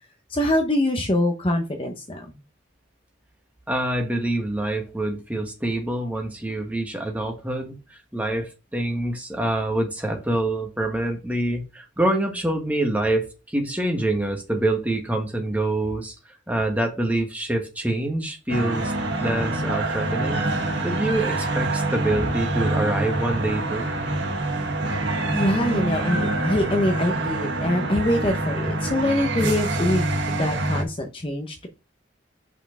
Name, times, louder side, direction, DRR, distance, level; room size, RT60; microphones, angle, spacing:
voice 1, 0.3-2.3 25.3-31.7, left 1 dB, 25° left, 4 dB, 0.8 m, -24 dB
voice 2, 3.7-16.1 16.5-20.5 20.8-23.9, right 1 dB, 10° right, 2 dB, 1.3 m, -26 dB
sound 1, 18.5-30.8, right 2 dB, 65° right, 1.4 m, -26 dB
5.7 x 4.4 x 5.9 m, 0.29 s
head